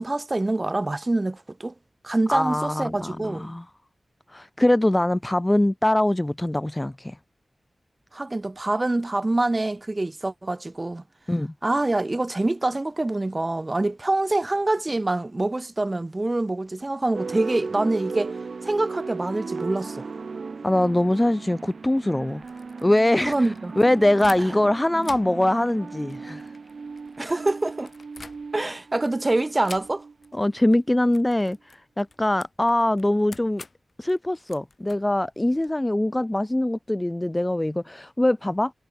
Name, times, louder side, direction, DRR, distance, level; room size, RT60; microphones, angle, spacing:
voice 1, 0.0-1.7 2.0-3.5 8.1-11.0 11.6-18.3 18.6-20.1 23.3-23.7 27.2-27.9 28.5-30.0, right 2 dB, 30° right, 2.5 m, -25 dB
voice 2, 2.3-3.6 4.3-7.2 11.3-11.5 20.6-22.4 22.8-26.5 30.3-33.6 34.0-38.7, left 1 dB, 15° left, 0.3 m, -23 dB
sound 1, 17.1-30.5, right 4 dB, 70° right, 2.4 m, -37 dB
sound 2, 22.3-24.7 25.0-28.8 29.6-30.3 30.6-30.8 31.1-35.7, left 3 dB, 45° left, 5.2 m, -47 dB
wide cardioid pair, 90°, 0 cm